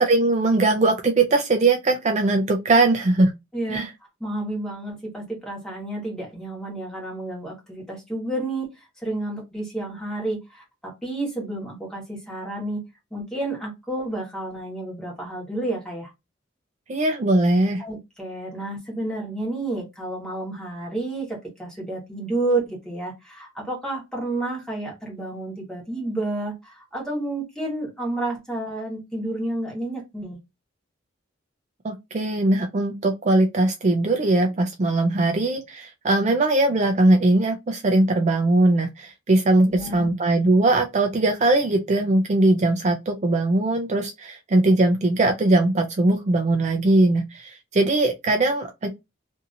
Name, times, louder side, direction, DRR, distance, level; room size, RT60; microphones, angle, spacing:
voice 1, 0.0-3.3 3.7-3.9 16.9-17.8 31.8-48.9, right 2 dB, 35° right, 0.4 m, -20 dB
voice 2, 3.5-3.8 4.2-8.7 9.0-12.8 13.1-16.1 17.8-30.4 39.6-40.1, right 2 dB, 5° left, 1.3 m, -30 dB
2.8 x 2.6 x 2.5 m
head